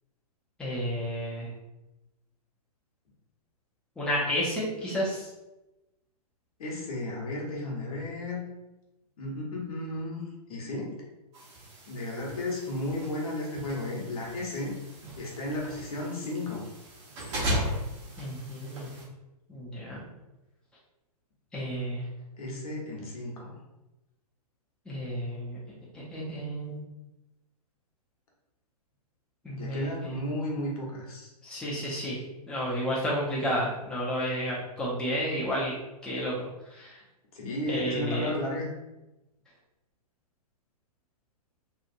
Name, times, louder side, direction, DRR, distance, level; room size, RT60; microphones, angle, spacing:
voice 1, 0.6-1.5 4.0-5.3 18.2-18.9 19.5-20.0 21.5-22.0 24.9-25.6 25.9-26.8 29.4-30.2 31.4-32.2 32.5-35.7 36.0-37.0 37.7-38.3, equal, 5° left, -7 dB, 0.6 m, -31 dB
voice 2, 6.6-8.5 9.2-10.2 10.5-11.0 11.9-14.7 15.2-16.7 22.4-23.6 29.6-31.3 37.3-38.7, left 1 dB, 65° left, -3 dB, 1.0 m, -34 dB
sound 1, 11.3-19.0, equal, 45° right, 1.1 m, -37 dB
2.9 x 2.5 x 2.5 m, 1.0 s
hypercardioid pair, 125°, 20 cm